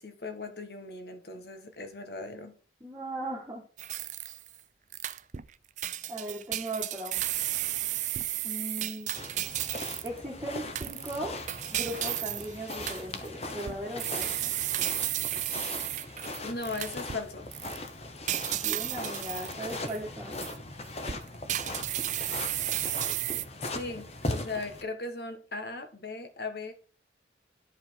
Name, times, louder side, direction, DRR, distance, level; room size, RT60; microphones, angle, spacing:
voice 1, 0.0-2.5 16.4-17.5 23.3-26.7, left 3 dB, 60° left, 1.4 m, -38 dB
voice 2, 2.8-3.6 6.1-7.2 8.4-9.1 10.0-11.4 11.7-14.6 18.5-20.4, right 1 dB, 15° right, 1.7 m, -38 dB
sound 1, 3.8-4.6 4.9-5.5 5.8-10.2 10.8-17.2 17.5-17.8 18.3-20.0 20.4-20.6 21.0-23.4, right 13 dB, 40° right, 0.4 m, -33 dB
sound 2, 9.1-24.8, left 2 dB, 35° left, 1.0 m, -39 dB
11.0 x 5.2 x 4.5 m
head